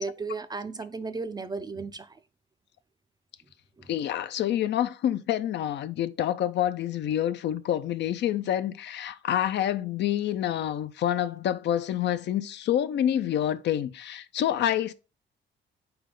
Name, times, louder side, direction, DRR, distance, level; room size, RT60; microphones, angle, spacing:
voice 1, 0.0-2.2 3.8-3.9, right 4 dB, 20° right, 0.4 m, -35 dB
voice 2, 3.9-14.9, left 11 dB, 65° left, 0.4 m, -27 dB
4.2 x 3.5 x 3.7 m
cardioid pair, 90°, 20 cm